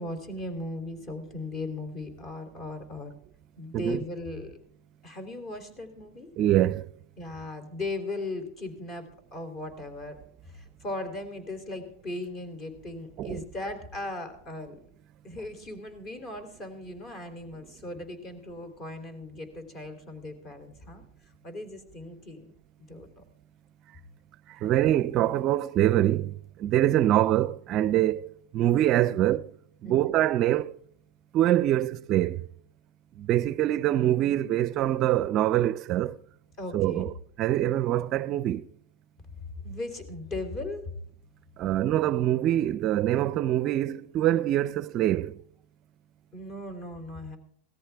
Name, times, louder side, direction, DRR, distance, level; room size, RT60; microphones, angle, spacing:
voice 1, 0.0-3.2 3.6-4.6 5.0-6.3 7.2-10.2 10.4-14.8 15.2-21.0 21.4-22.5 22.9-23.2 29.8-30.2 36.6-37.1 39.3-40.8 46.3-47.4, left 2 dB, 35° left, 3.3 m, -38 dB
voice 2, 6.4-6.9 13.2-13.4 24.5-28.3 28.5-29.5 29.8-30.8 31.3-32.5 33.2-36.2 36.7-37.1 37.4-38.7 41.6-45.4, right 13 dB, 40° right, 0.5 m, -24 dB
17.0 x 14.0 x 3.5 m
supercardioid pair, 140°, 0 cm